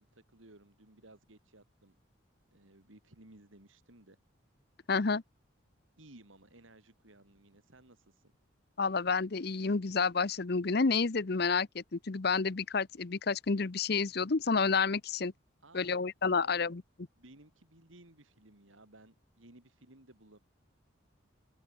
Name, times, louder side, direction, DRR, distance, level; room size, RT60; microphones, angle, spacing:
voice 1, 0.0-2.0 2.5-4.2 6.0-8.3 15.6-16.0 16.3-16.7 17.2-20.4, right 2 dB, 75° right, 3.5 m, -58 dB
voice 2, 4.9-5.2 8.8-15.3 15.7-16.8, left 4 dB, 50° left, 0.7 m, -30 dB
open air
head